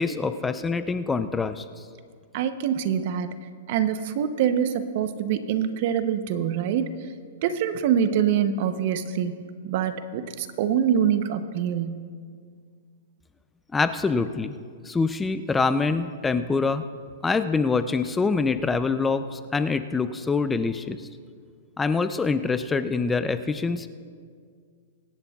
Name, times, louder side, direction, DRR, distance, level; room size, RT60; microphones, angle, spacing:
voice 1, 0.0-1.6 13.7-14.5 14.9-16.8 17.2-21.0 21.8-23.9, left 4 dB, 10° left, 11 dB, 0.4 m, -25 dB
voice 2, 2.3-3.3 3.7-7.1 7.4-9.4 9.6-12.0, right 8 dB, 50° right, 11 dB, 0.7 m, -25 dB
24.5 x 11.0 x 2.4 m, 2.1 s
hypercardioid pair, 150°, 0 cm